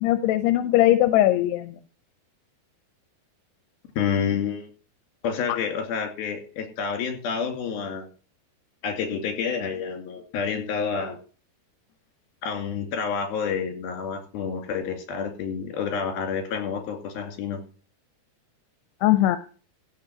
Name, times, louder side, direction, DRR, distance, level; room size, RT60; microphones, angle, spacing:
voice 1, 0.0-1.8 5.5-5.6 19.0-19.4, left 14 dB, 90° left, 11 dB, 2.8 m, -20 dB
voice 2, 4.0-4.7 5.2-8.1 8.8-11.2 12.4-17.6, left 6 dB, 70° left, 5 dB, 4.2 m, -29 dB
16.0 x 5.5 x 5.9 m, 0.38 s
omnidirectional pair, 4.6 m